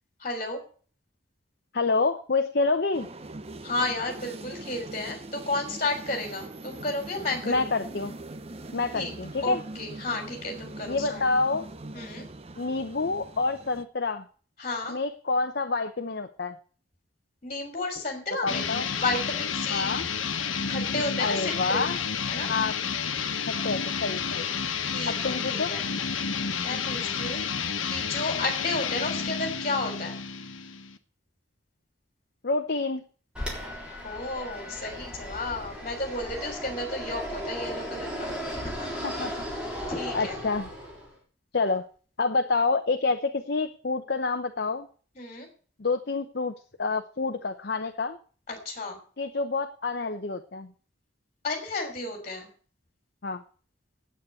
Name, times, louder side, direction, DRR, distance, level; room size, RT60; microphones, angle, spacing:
voice 1, 0.2-0.6 3.6-7.7 8.9-9.1 9.4-11.2 11.9-12.3 14.6-15.0 17.4-20.0 20.7-21.8 22.3-22.5 24.8-25.9 26.6-30.2 34.0-38.3 38.6-39.0 39.9-40.4 45.1-45.5 48.5-49.0 51.4-52.5, left 2 dB, 35° left, 3 dB, 3.0 m, -32 dB
voice 2, 1.7-3.1 7.5-8.1 8.7-9.6 10.9-11.6 12.6-14.2 14.9-16.6 18.4-18.9 19.7-20.0 21.2-22.0 22.5-22.7 23.5-24.6 25.1-25.7 32.4-33.0 39.0-39.3 40.1-40.7 41.5-41.8 42.2-44.9 45.8-46.5 46.8-48.2 49.2-50.7 53.2-53.4, left 3 dB, 55° left, 6 dB, 0.7 m, -28 dB
sound 1, 2.9-13.8, right 2 dB, 30° right, 0.6 m, -42 dB
sound 2, 18.5-31.0, left 6 dB, 85° left, 1.1 m, -30 dB
Fixed-wing aircraft airplane, 33.3-41.1, equal, 5° right, 3.6 m, -36 dB
9.2 x 8.6 x 8.2 m, 0.42 s
head